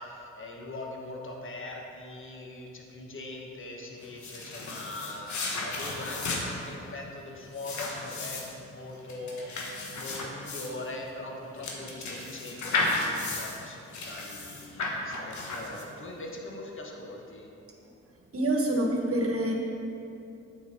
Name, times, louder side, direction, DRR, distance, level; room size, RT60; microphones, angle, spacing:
voice 1, 0.0-17.5, left 2 dB, 45° left, 0 dB, 1.4 m, -41 dB
sound 1, 4.0-16.1, left 2 dB, 70° left, 1.2 m, -34 dB
voice 2, 18.3-19.5, right 1 dB, 50° right, 1 dB, 1.4 m, -26 dB
8.1 x 4.7 x 5.5 m, 2.7 s
supercardioid pair, 50°, 30 cm